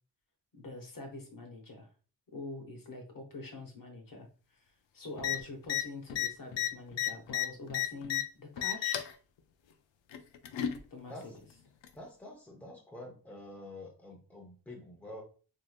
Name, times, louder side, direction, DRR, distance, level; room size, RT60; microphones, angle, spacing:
voice 1, 0.5-1.9 2.3-4.6 4.9-9.1 10.9-11.3, left 2 dB, 50° left, 2 dB, 1.0 m, -45 dB
voice 2, 5.1-5.5 11.1-11.4 11.9-15.2, left 1 dB, 5° left, 0 dB, 0.7 m, -48 dB
sound 1, 5.2-5.4 5.6-5.8 6.1-8.2 8.6-9.1 10.1-10.8 11.8-11.9, left 12 dB, 85° left, 0.5 m, -32 dB
3.3 x 2.8 x 2.2 m, 0.38 s
cardioid pair, 80°, 44 cm